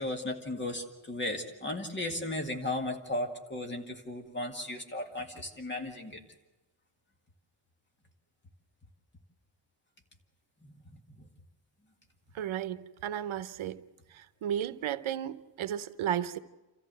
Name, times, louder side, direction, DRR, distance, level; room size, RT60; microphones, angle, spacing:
voice 1, 0.0-6.2 10.6-10.7, left 1 dB, 25° left, 1.9 m, -35 dB
voice 2, 12.3-13.8 14.1-16.4, right 10 dB, 90° right, 0.9 m, -34 dB
28.5 x 14.5 x 7.7 m
wide cardioid pair, 175°, 47 cm